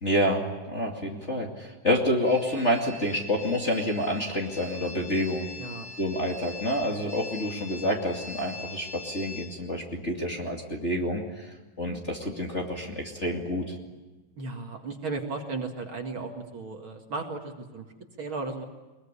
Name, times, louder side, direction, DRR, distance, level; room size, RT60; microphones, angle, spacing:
voice 1, 0.0-5.5 6.0-11.5 11.8-13.8, equal, 25° left, -1 dB, 2.4 m, -28 dB
sound 1, 2.2-9.5, left 3 dB, 65° left, 7.1 m, -42 dB
voice 2, 5.6-5.9 14.4-17.9 18.2-18.6, right 3 dB, 45° right, 3 dB, 2.7 m, -35 dB
22.0 x 22.0 x 9.9 m, 1.2 s
omnidirectional pair, 3.3 m